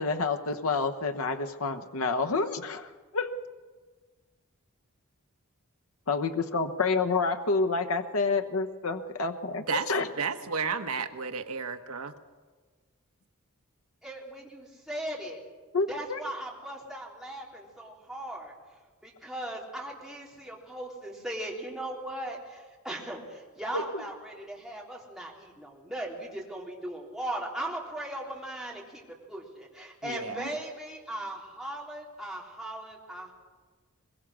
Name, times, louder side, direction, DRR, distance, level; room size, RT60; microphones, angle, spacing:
voice 1, 0.0-3.3 6.1-10.1 15.7-16.2 23.7-24.1, left 4 dB, 75° left, 7 dB, 1.0 m, -29 dB
voice 2, 10.2-12.1 30.0-30.6, right 5 dB, 80° right, 8 dB, 1.3 m, -32 dB
voice 3, 14.0-15.4 15.9-18.5 19.0-29.0 29.3-33.3, right 1 dB, ahead, -3 dB, 3.6 m, -38 dB
22.0 x 21.5 x 6.3 m, 1.4 s
head